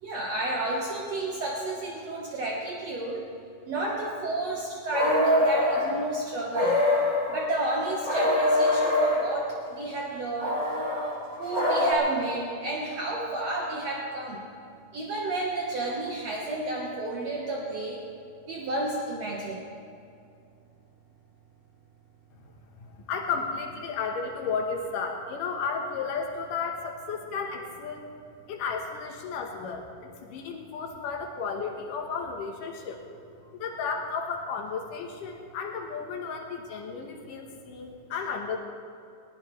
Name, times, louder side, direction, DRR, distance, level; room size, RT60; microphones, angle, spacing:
voice 1, 0.0-3.2 3.7-6.8 7.3-10.6 11.4-14.4 14.9-18.0 18.5-19.6, right 2 dB, 60° right, -3 dB, 2.3 m, -31 dB
sound 1, 4.9-5.9 6.5-7.4 8.0-9.3 10.4-11.9, left 1 dB, 10° left, 3.1 m, -24 dB
voice 2, 22.8-28.0 28.5-29.9 30.2-33.0 33.6-38.6, left 5 dB, 85° left, 2 dB, 2.7 m, -33 dB
20.5 x 18.5 x 3.2 m, 2.5 s
omnidirectional pair, 3.7 m